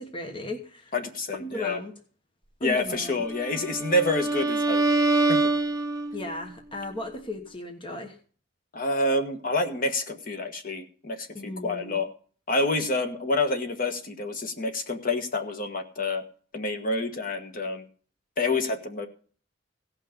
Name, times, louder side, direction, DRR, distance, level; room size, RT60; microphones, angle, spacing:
voice 1, 0.0-0.9 1.4-1.9 2.6-3.2 6.1-8.2 11.3-12.0, left 1 dB, 30° left, 4 dB, 1.2 m, -36 dB
voice 2, 0.9-1.8 2.6-4.8 5.3-5.5 8.7-12.1 12.5-16.2 16.5-17.8 18.4-19.1, left 2 dB, 50° left, 6 dB, 1.5 m, -28 dB
Bowed string instrument, 3.3-6.4, right 2 dB, 20° right, 0.8 m, -25 dB
16.5 x 5.9 x 6.7 m, 0.43 s
head